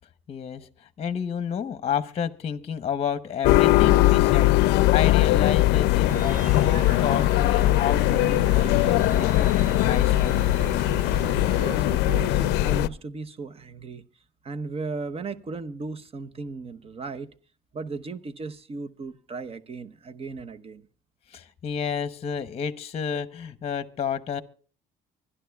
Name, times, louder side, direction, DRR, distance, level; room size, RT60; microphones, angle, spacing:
voice 1, 0.3-10.4 21.3-24.4, left 7 dB, 35° left, 0.9 m, -31 dB
sound 1, 3.4-12.9, left 16 dB, 90° left, 0.5 m, -20 dB
sound 2, 6.1-12.7, right 7 dB, 55° right, 0.5 m, -37 dB
voice 2, 11.6-14.0 14.4-17.3 17.7-20.9, right 4 dB, 35° right, 0.9 m, -36 dB
24.5 x 11.5 x 2.3 m
cardioid pair, 110°, 17 cm